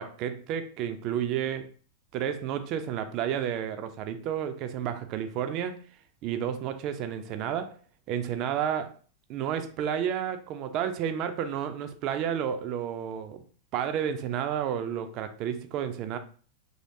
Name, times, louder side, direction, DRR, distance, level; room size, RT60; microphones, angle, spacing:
voice 1, 0.0-1.7 2.1-5.8 6.2-7.7 8.1-8.9 9.3-13.4 13.7-16.2, right 9 dB, 40° right, 0.4 m, -31 dB
3.0 x 2.7 x 2.7 m
figure-of-eight pair, 90°, 0 cm